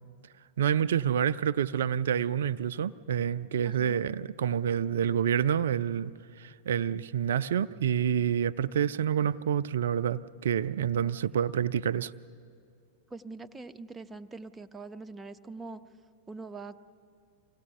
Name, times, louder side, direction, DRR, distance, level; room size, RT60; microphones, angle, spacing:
voice 1, 0.6-12.1, right 8 dB, 60° right, 0.4 m, -28 dB
voice 2, 3.6-4.0 11.0-11.1 13.1-15.8 16.3-16.8, right 3 dB, 15° right, 0.6 m, -43 dB
24.5 x 16.5 x 6.8 m
figure-of-eight pair, 90°, 0 cm